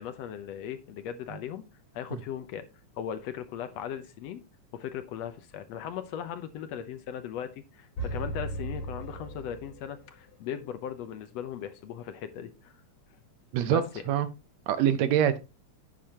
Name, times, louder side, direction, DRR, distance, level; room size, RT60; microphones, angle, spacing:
voice 1, 0.0-1.6 1.9-2.6 3.0-4.4 4.7-12.7 13.6-13.8, left 9 dB, 70° left, 1.8 m, -38 dB
sound 1, 8.0-10.1, right 2 dB, 45° left, 3.5 m, -36 dB
voice 2, 14.7-15.4, right 10 dB, 75° right, 1.8 m, -24 dB
10.0 x 8.6 x 2.9 m
omnidirectional pair, 3.4 m